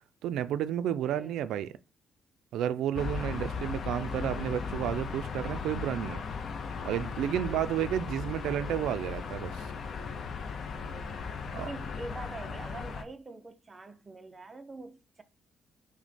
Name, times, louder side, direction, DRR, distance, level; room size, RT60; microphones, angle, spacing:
voice 1, 0.2-1.7 2.5-6.2 6.8-9.7 11.5-11.7, right 10 dB, 85° right, 0.3 m, -31 dB
voice 2, 1.0-1.4 3.3-3.6 7.3-7.8 10.8-11.3 11.6-15.2, right 2 dB, 20° right, 0.4 m, -45 dB
sound 1, 3.0-13.0, left 5 dB, 40° left, 0.5 m, -37 dB
5.8 x 2.1 x 4.1 m
cardioid pair, 175°, 0 cm